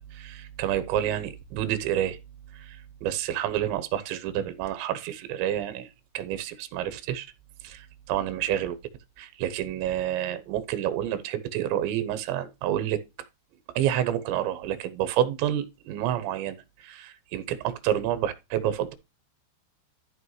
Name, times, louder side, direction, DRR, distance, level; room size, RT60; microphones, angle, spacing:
voice 1, 0.0-2.2 2.6-5.9 6.1-7.3 7.6-8.8 9.2-13.0 13.8-16.6 16.8-18.9, right 11 dB, 85° right, 3.2 m, -29 dB
13.5 x 5.5 x 3.1 m
omnidirectional pair, 5.1 m